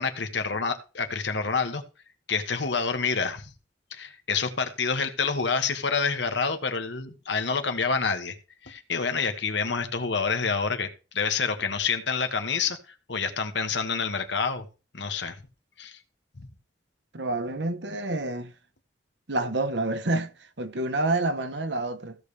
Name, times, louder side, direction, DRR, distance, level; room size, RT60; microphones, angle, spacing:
voice 1, 0.0-1.8 2.3-3.5 3.9-8.4 8.6-10.9 11.1-12.8 13.1-14.7 14.9-15.3 15.8-16.0 16.4-16.5, left 5 dB, 80° left, 1.4 m, -27 dB
voice 2, 17.1-18.5 19.3-22.2, right 2 dB, 75° right, 1.1 m, -28 dB
16.0 x 6.9 x 3.3 m
head